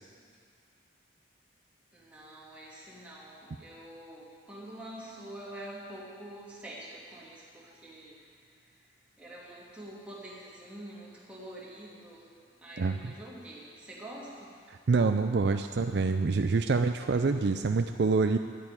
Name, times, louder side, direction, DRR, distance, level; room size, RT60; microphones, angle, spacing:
voice 1, 1.9-8.8 9.2-12.3 12.6-14.7, right 1 dB, 5° right, -6 dB, 2.6 m, -46 dB
voice 2, 12.8-13.1 14.9-18.4, right 4 dB, 55° right, 7 dB, 0.4 m, -26 dB
11.0 x 8.9 x 9.7 m, 2.1 s
head